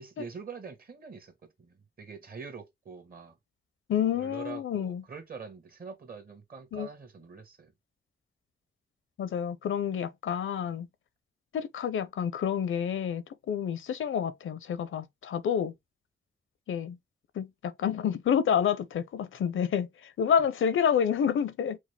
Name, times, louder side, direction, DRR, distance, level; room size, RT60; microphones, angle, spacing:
voice 1, 0.0-1.3 1.6-3.4 4.1-7.7, right 5 dB, 45° right, 1.3 m, -44 dB
voice 2, 3.9-5.0 6.7-6.9 9.2-10.9 11.5-15.7 16.7-17.0 17.4-21.8, left 8 dB, 75° left, 0.6 m, -29 dB
5.1 x 2.1 x 3.2 m
cardioid pair, 80°, 20 cm